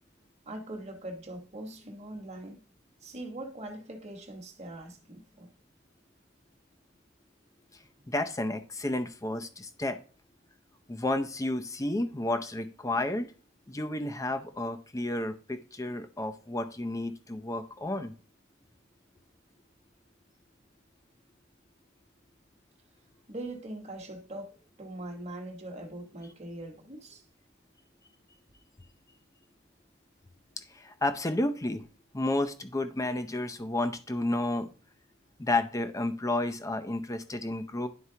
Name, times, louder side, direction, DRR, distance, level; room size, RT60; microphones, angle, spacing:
voice 1, 0.5-2.6 3.0-5.5 23.3-24.5 24.8-27.2, right 1 dB, 35° right, 1.4 m, -41 dB
voice 2, 8.1-10.0 10.9-13.3 13.7-18.1 30.7-31.8 32.1-34.7 35.4-37.9, left 2 dB, 15° left, 0.6 m, -31 dB
11.0 x 4.6 x 2.8 m
head